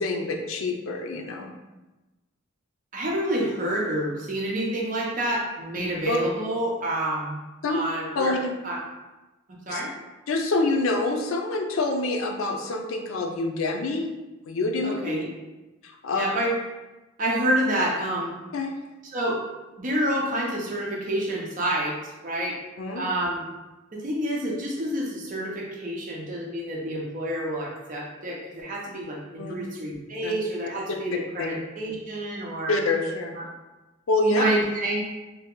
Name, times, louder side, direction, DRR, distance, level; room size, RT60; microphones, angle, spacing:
voice 1, 0.0-1.5 5.8-6.2 7.6-7.8 8.1-8.5 9.7-9.8 10.3-14.1 14.5-14.9 15.8-16.3 18.5-18.7 22.8-23.1 29.4-29.7 30.2-30.3 31.4-31.5 32.7-33.3 34.1-34.4, left 2 dB, 85° left, 2 dB, 0.4 m, -26 dB
voice 2, 2.9-7.4 7.7-8.3 8.6-8.8 9.7-9.9 14.8-15.2 16.2-16.5 17.2-18.3 19.1-19.4 19.8-22.0 22.2-22.6 22.9-23.4 23.9-32.8 34.2-35.0, right 1 dB, 40° right, -3 dB, 0.6 m, -28 dB
2.8 x 2.2 x 3.6 m, 1.1 s
head